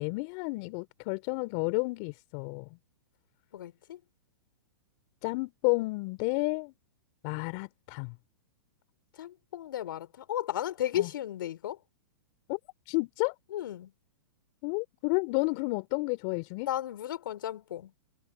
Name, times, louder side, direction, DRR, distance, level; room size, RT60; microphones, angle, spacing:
voice 1, 0.0-2.7 5.2-6.7 7.2-8.1 10.9-11.1 12.5-12.6 12.9-13.3 14.6-16.7, left 30 dB, 45° left, 2.8 m, -31 dB
voice 2, 3.5-4.0 9.2-11.8 13.5-13.9 16.6-17.9, left 12 dB, 65° left, 4.3 m, -34 dB
hypercardioid pair, 115°, 12 cm